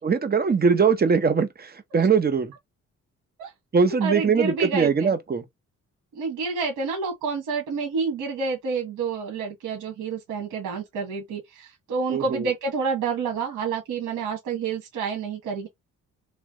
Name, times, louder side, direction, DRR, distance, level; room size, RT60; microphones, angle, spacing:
voice 1, 0.0-2.5 3.7-5.4 12.1-12.5, right 5 dB, 30° right, 1.0 m, -21 dB
voice 2, 4.0-5.1 6.1-15.7, right 5 dB, 90° right, 1.5 m, -29 dB
3.3 x 2.9 x 3.7 m
cardioid pair, 90°, 30 cm